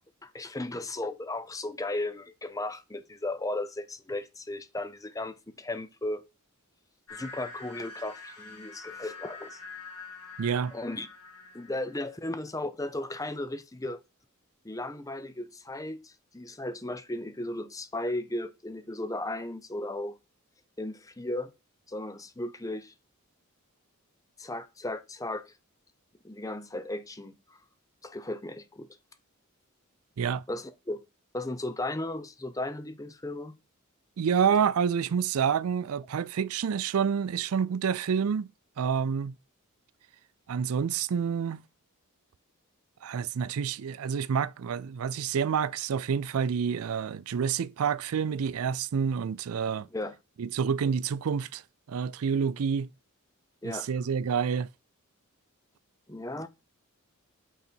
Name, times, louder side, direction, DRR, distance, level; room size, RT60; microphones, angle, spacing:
voice 1, 0.2-6.2 7.1-9.6 10.7-11.1 11.5-14.0 14.6-20.2 20.8-21.5 21.9-22.9 24.4-25.5 26.2-27.6 28.0-28.9 30.5-31.0 31.3-33.6 49.9-50.1 53.6-53.9 56.1-56.5, left 1 dB, 15° left, 0.7 m, -35 dB
sound 1, 7.1-12.1, left 3 dB, 70° left, 2.6 m, -45 dB
voice 2, 10.4-10.7 30.2-30.4 34.2-38.5 38.8-39.4 40.5-41.6 43.0-49.9 50.4-51.6 51.9-52.9 53.6-54.7, right 7 dB, 75° right, 0.4 m, -28 dB
8.4 x 3.9 x 4.4 m
head